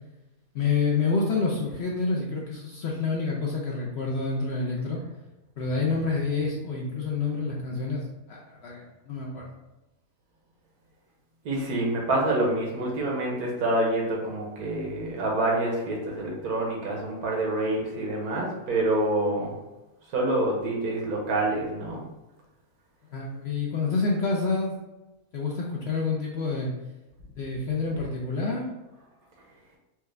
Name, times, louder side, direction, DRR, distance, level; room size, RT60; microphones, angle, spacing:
voice 1, 0.5-5.0 5.6-9.5 23.1-24.7 25.3-26.7 27.4-28.7, left 4 dB, 60° left, -2 dB, 0.7 m, -28 dB
voice 2, 11.4-19.5 20.1-22.0, right 2 dB, 80° right, -1 dB, 1.5 m, -27 dB
4.6 x 2.3 x 3.2 m, 1.0 s
omnidirectional pair, 1.6 m